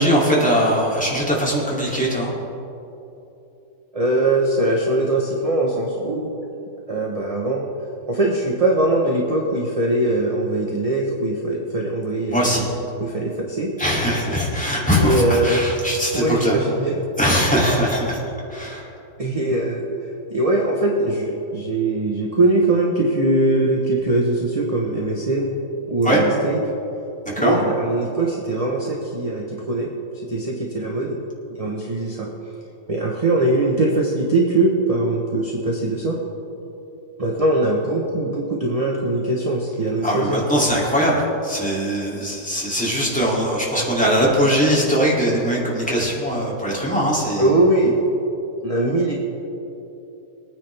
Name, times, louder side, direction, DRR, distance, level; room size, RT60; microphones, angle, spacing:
voice 1, 0.0-2.3 12.3-12.7 13.8-16.5 17.2-18.2 18.5-18.9 26.0-26.2 27.4-27.6 40.0-47.5, equal, 5° left, -6 dB, 2.6 m, -20 dB
voice 2, 3.9-6.3 6.9-7.7 8.1-12.4 13.0-13.7 14.9-15.6 16.1-16.9 19.2-19.8 20.3-25.6 25.9-26.6 27.4-29.9 30.3-31.2 31.6-32.3 32.9-36.2 37.2-40.4 47.4-48.0 48.6-49.1, right 2 dB, 25° right, -1 dB, 0.9 m, -21 dB
22.0 x 9.6 x 3.4 m, 2.9 s
omnidirectional pair, 1.9 m